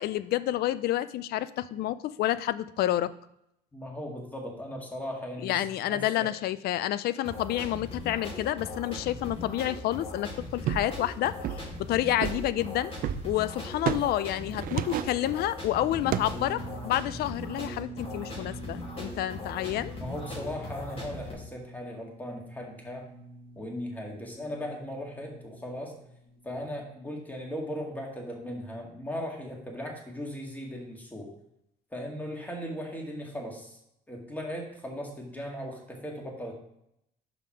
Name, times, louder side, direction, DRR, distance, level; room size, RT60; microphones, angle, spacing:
voice 1, 0.0-3.1 5.4-11.3 11.8-12.9 13.2-20.0, left 13 dB, 70° left, 16 dB, 0.4 m, -29 dB
voice 2, 3.7-6.3 20.0-23.1 23.6-25.9 26.4-31.3 31.9-33.8 34.1-36.5, equal, 10° left, 0 dB, 1.9 m, -38 dB
sound 1, 7.2-21.3, left 2 dB, 35° left, 2.3 m, -40 dB
sound 2, 10.7-11.0 11.4-11.8 12.2-13.3 13.9-14.1 14.5-15.2 16.1-16.5 16.9-17.0, right 11 dB, 55° right, 0.4 m, -31 dB
sound 3, 15.8-26.7, right 2 dB, 50° left, 2.9 m, -46 dB
5.8 x 5.5 x 4.8 m, 0.78 s
cardioid pair, 110°, 17 cm